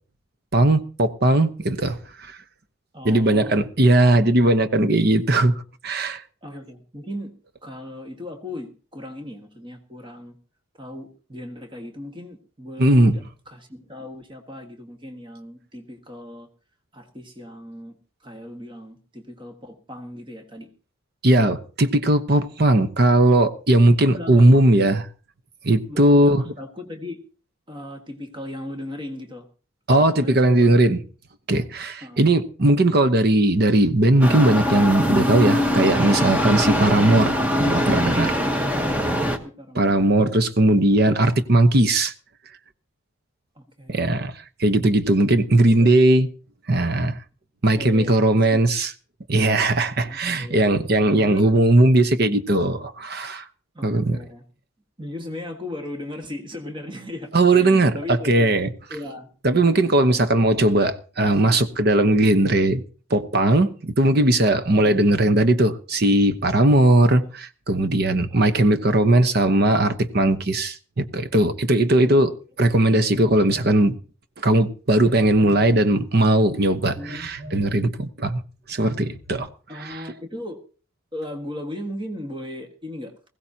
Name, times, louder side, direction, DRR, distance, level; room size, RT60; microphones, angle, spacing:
voice 1, 0.5-2.3 3.0-5.5 5.8-6.2 12.8-13.2 21.2-25.0 25.6-26.4 29.9-31.0 31.5-38.3 39.7-42.1 43.9-44.3 44.6-46.3 46.7-47.2 47.6-48.9 49.3-53.4 53.8-54.2 57.3-57.9 58.2-58.7 59.4-62.8 63.1-72.3 72.6-74.0 74.4-78.4 78.7-79.5 79.8-80.0, right 1 dB, 50° right, 1.0 m, -18 dB
voice 2, 2.9-3.6 6.4-7.3 7.6-10.4 10.8-16.5 16.9-17.9 18.2-20.7 24.1-24.6 25.9-27.2 27.7-29.5 29.9-30.9 32.0-32.2 39.0-40.1 43.6-44.1 45.5-45.9 47.7-48.2 48.5-48.6 50.1-50.6 51.1-51.6 53.8-54.4 55.0-58.6 58.9-59.3 60.2-60.3 64.8-65.1 68.3-68.8 72.0-72.1 77.0-77.3 79.7-80.6 81.1-83.1, left 1 dB, 25° right, 1.6 m, -37 dB
sound 1, 34.2-39.4, equal, 5° right, 1.1 m, -22 dB
Telephone, 73.1-73.8 75.0-75.7 77.0-77.7 78.9-79.4, right 1 dB, 85° right, 6.8 m, -40 dB
20.5 x 16.0 x 2.9 m
head